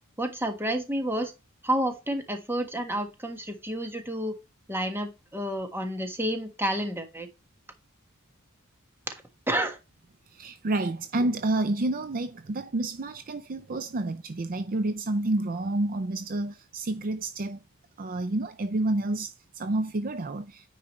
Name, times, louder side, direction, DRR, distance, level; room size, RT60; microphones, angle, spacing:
voice 1, 0.2-1.3 1.6-4.4 4.7-7.3 9.5-9.8, right 1 dB, 10° right, 1.5 m, -30 dB
voice 2, 10.3-17.6 18.0-20.7, right 2 dB, 40° right, 0.5 m, -29 dB
9.6 x 4.8 x 3.1 m
head